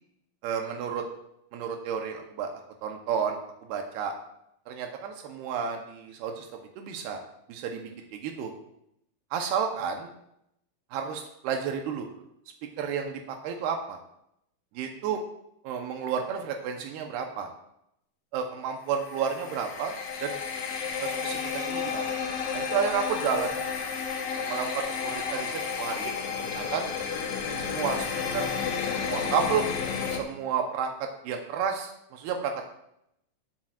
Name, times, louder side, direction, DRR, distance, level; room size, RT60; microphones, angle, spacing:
voice 1, 0.4-1.0 1.5-2.5 2.8-3.4 3.7-4.1 4.7-6.5 6.8-7.2 7.5-8.5 9.3-10.1 10.9-12.2 12.8-14.0 14.8-15.2 15.6-17.5 18.3-19.9 20.2-20.4 21.0-22.1 22.5-23.6 24.4-26.8 27.6-28.1 28.3-28.5 28.8-29.7 30.1-30.9 31.2-32.7, right 7 dB, 85° right, 3 dB, 2.9 m, -31 dB
sound 1, 18.9-30.2, left 6 dB, 60° left, 2.2 m, -32 dB
18.5 x 8.6 x 2.5 m, 0.78 s
omnidirectional pair, 4.4 m